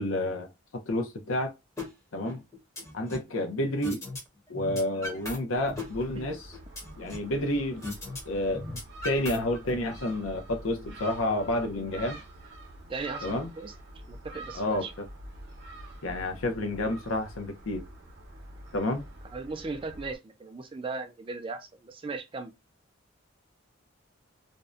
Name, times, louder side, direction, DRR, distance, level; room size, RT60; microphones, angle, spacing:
voice 1, 0.0-1.5 2.1-2.4 2.9-4.0 4.5-6.5 7.0-7.9 8.3-8.6 9.0-12.2 13.2-13.5 14.5-15.1 16.0-17.8 18.7-19.1, left 1 dB, 80° left, 0.6 m, -30 dB
sound 1, 1.8-1.9 2.3-3.3 3.8-4.2 4.5-5.4 5.7-7.3 7.8-8.2 8.5-9.8, left 2 dB, 15° left, 0.7 m, -37 dB
Gull seagull, 5.6-20.2, right 1 dB, 55° right, 0.7 m, -46 dB
voice 2, 12.9-13.7 14.1-14.9 19.3-22.5, right 3 dB, 25° right, 0.3 m, -37 dB
2.6 x 2.1 x 2.3 m
head